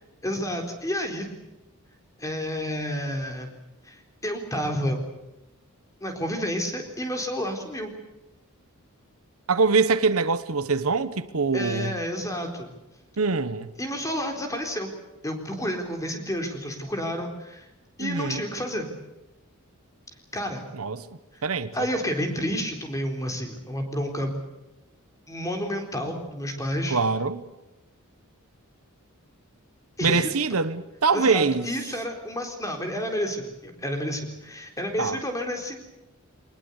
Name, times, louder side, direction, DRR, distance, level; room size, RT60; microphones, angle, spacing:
voice 1, 0.2-1.3 2.2-3.5 3.8-5.0 6.0-7.9 11.5-12.7 13.8-14.9 15.2-17.7 18.0-18.9 20.3-20.6 21.3-21.4 21.7-24.3 25.3-27.0 30.0-30.3 31.1-35.8, equal, 15° left, 4.1 m, -30 dB
voice 2, 9.5-11.9 13.2-13.7 18.0-18.4 20.7-21.0 21.4-21.7 26.9-27.4 30.0-31.7 35.0-35.2, right 4 dB, 70° right, 1.1 m, -24 dB
24.0 x 20.0 x 8.3 m
head